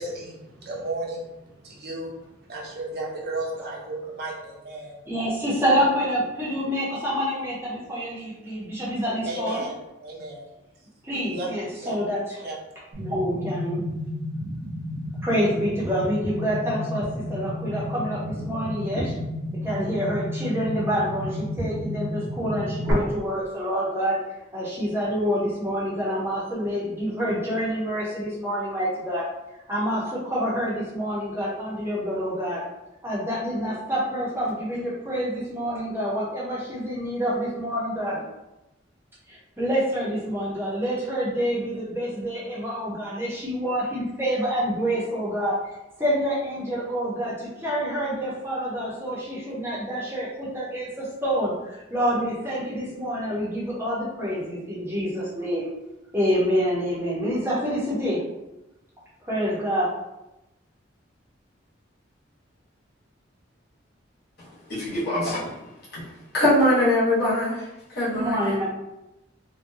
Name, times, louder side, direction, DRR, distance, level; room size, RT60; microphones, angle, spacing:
voice 1, 0.0-5.0 9.2-9.8 10.0-10.5 11.3-11.5 11.8-12.0 12.4-12.6, right 2 dB, 50° right, -3 dB, 0.6 m, -34 dB
voice 2, 5.1-9.6 11.0-12.2 13.0-13.8 15.2-19.1 19.6-24.2 24.5-29.3 29.7-32.6 33.0-38.2 39.6-45.6 46.0-51.5 51.9-55.7 56.1-58.2 59.3-59.9 68.1-68.6, equal, 10° right, -7 dB, 0.7 m, -27 dB
sound 1, 12.9-22.9, left 1 dB, 90° right, 0.7 m, -32 dB
voice 3, 64.7-65.5 65.9-66.1 66.3-68.6, left 1 dB, 55° left, -9 dB, 1.1 m, -23 dB
2.6 x 2.2 x 2.6 m, 0.95 s
head